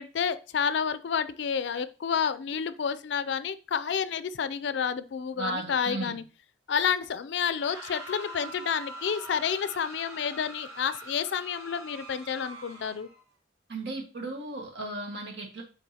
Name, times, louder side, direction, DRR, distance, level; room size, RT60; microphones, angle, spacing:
voice 1, 0.0-6.2 6.7-13.1, left 7 dB, 70° left, 14 dB, 0.4 m, -30 dB
voice 2, 5.4-6.2 13.7-15.6, right 2 dB, 70° right, 1 dB, 1.6 m, -35 dB
sound 1, 7.4-13.2, right 1 dB, 20° right, 1.7 m, -44 dB
9.8 x 3.6 x 2.8 m, 0.33 s
head